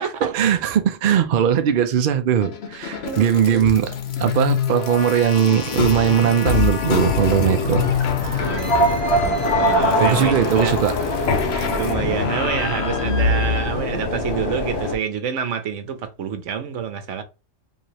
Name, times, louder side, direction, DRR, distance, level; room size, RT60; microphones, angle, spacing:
voice 1, 0.2-3.9 4.2-8.6 10.0-10.9, right 9 dB, 55° right, 0.6 m, -19 dB
sound 1, 2.4-13.7, left 3 dB, 60° left, 0.9 m, -23 dB
voice 2, 3.0-3.9 8.4-10.8 11.3-17.2, right 7 dB, 75° right, 1.1 m, -28 dB
sound 2, 5.3-15.0, left 3 dB, 45° left, 1.2 m, -28 dB
sound 3, 7.6-13.2, equal, 10° right, 1.8 m, -40 dB
4.8 x 2.8 x 2.8 m
omnidirectional pair, 1.3 m